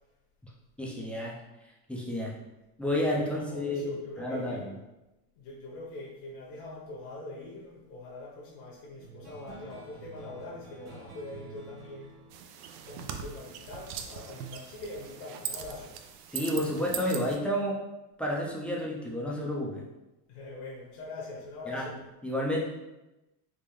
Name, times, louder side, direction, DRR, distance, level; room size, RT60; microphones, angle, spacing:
voice 1, 0.8-1.4 1.9-2.3 2.8-4.7 16.3-17.8 18.2-19.8 21.7-21.9 22.2-22.7, left 1 dB, 5° left, -4 dB, 0.3 m, -30 dB
voice 2, 3.1-4.8 5.3-12.2 12.8-16.0 20.3-22.0, left 2 dB, 70° left, -4 dB, 1.0 m, -43 dB
sound 1, 9.0-13.9, right 4 dB, 60° right, 1.3 m, -50 dB
sound 2, 12.3-17.4, right 8 dB, 80° right, 0.6 m, -40 dB
3.6 x 2.5 x 3.0 m, 0.99 s
supercardioid pair, 110°, 46 cm